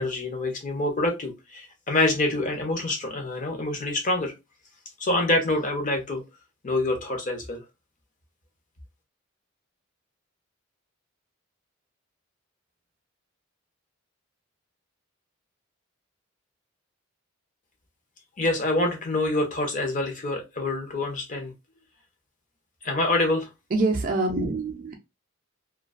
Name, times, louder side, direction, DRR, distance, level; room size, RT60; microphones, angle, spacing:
voice 1, 0.0-4.3 5.0-6.2 6.6-7.6 18.4-21.5 22.8-23.5, left 2 dB, 40° left, 0.6 m, -26 dB
voice 2, 23.7-24.9, right 2 dB, 40° right, 0.4 m, -25 dB
2.4 x 2.3 x 2.3 m
head